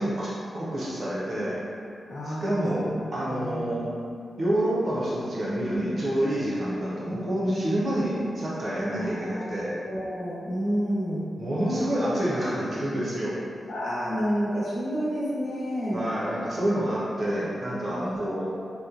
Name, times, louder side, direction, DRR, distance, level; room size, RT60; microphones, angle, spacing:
voice 1, 0.0-1.6 2.2-3.9 4.4-9.8 11.4-13.4 15.9-18.5, right 1 dB, 55° right, -7 dB, 0.7 m, -28 dB
voice 2, 2.1-2.9 3.3-3.7 8.9-9.6 9.9-11.2 13.7-16.0 18.0-18.3, equal, 70° left, -9 dB, 0.8 m, -30 dB
2.9 x 2.2 x 2.4 m, 2.5 s
wide cardioid pair, 100°, 0 cm